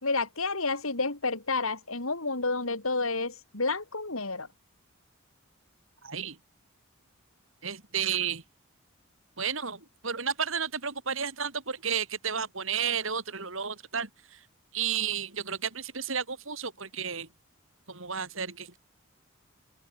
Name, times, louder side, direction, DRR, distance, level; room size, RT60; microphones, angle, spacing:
voice 1, 0.0-4.5, left 3 dB, 75° left, 4.3 m, -30 dB
voice 2, 6.0-6.4 7.6-8.4 9.4-14.4 14.7-17.3 17.9-18.8, right 7 dB, 65° right, 3.5 m, -32 dB
open air
head